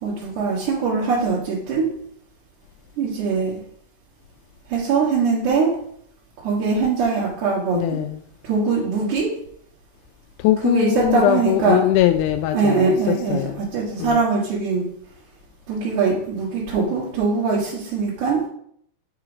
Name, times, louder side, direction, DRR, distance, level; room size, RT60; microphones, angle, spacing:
voice 1, 0.0-1.9 3.0-3.6 4.7-5.7 6.4-8.0 8.4-9.3 10.6-11.8 12.5-14.8 15.7-18.4, right 4 dB, 70° right, 3.0 m, -22 dB
voice 2, 7.7-8.2 10.4-13.7 14.0-14.2, left 13 dB, 80° left, 2.0 m, -21 dB
7.9 x 4.8 x 4.9 m
omnidirectional pair, 3.7 m